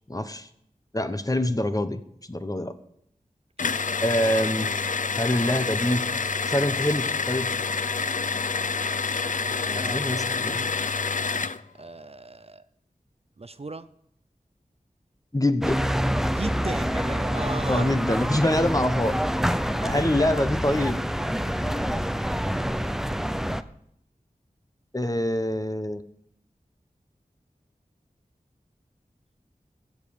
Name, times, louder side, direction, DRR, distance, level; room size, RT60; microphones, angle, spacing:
voice 1, 0.1-0.5 0.9-2.0 2.3-2.7 4.0-4.7 5.2-6.0 6.5-7.5 9.7-10.6 15.3-15.8 17.7-19.2 19.8-21.0 21.4-22.0 24.9-26.0, left 1 dB, 25° left, 9 dB, 1.1 m, -25 dB
sound 1, 3.6-11.6, left 5 dB, 60° left, 0.5 m, -27 dB
voice 2, 3.7-4.0 8.0-8.1 9.3-10.6 11.7-12.7 13.4-13.9 16.2-17.9, right 3 dB, 45° right, 12 dB, 0.6 m, -37 dB
sound 2, 15.6-23.6, equal, 5° right, 0.6 m, -26 dB
16.0 x 5.3 x 9.6 m, 0.72 s
wide cardioid pair, 65°, 15 cm